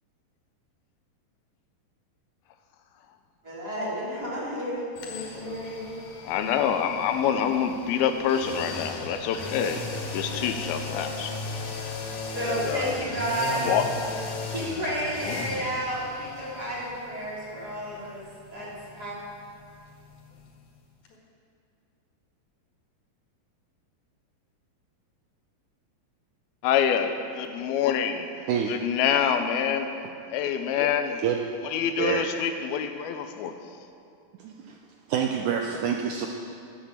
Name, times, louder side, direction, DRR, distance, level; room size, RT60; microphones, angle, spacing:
voice 1, 3.4-5.9 12.3-13.7 14.5-18.2 18.5-19.2, right 1 dB, 25° right, -8 dB, 4.0 m, -31 dB
sound 1, 5.0-20.8 21.1-21.2, left 3 dB, 60° left, 2.9 m, -37 dB
voice 2, 6.3-11.9 12.4-13.0 13.5-13.9 15.2-15.5 26.6-28.3 28.7-29.9 30.3-31.2 31.6-33.6, left 8 dB, 85° left, 7 dB, 2.6 m, -26 dB
voice 3, 34.4-34.8 35.1-36.3, right 8 dB, 85° right, 2 dB, 1.8 m, -27 dB
13.0 x 9.0 x 7.3 m, 2.4 s
omnidirectional pair, 4.3 m